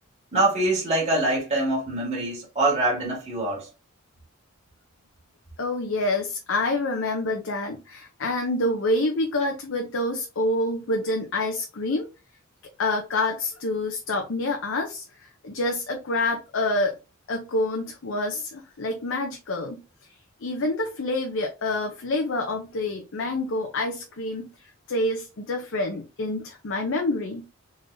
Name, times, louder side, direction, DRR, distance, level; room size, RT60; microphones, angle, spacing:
voice 1, 0.3-3.7, right 2 dB, 30° right, 2.0 m, -24 dB
voice 2, 5.6-12.1 12.8-17.0 17.3-19.8 20.4-24.5 24.9-27.5, left 2 dB, 60° left, 0.6 m, -27 dB
3.8 x 3.3 x 2.6 m
head